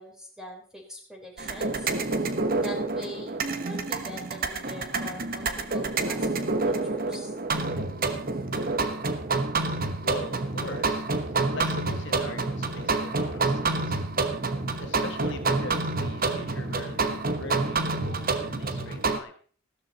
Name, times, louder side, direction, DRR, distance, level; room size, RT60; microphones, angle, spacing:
voice 1, 0.0-1.9 2.6-7.4, equal, 5° right, 0 dB, 3.7 m, -43 dB
sound 1, 1.4-19.2, right 3 dB, 45° right, 1.2 m, -28 dB
voice 2, 9.5-14.0 14.8-19.4, left 3 dB, 55° left, 6 dB, 1.4 m, -41 dB
15.0 x 13.0 x 4.1 m, 0.44 s
head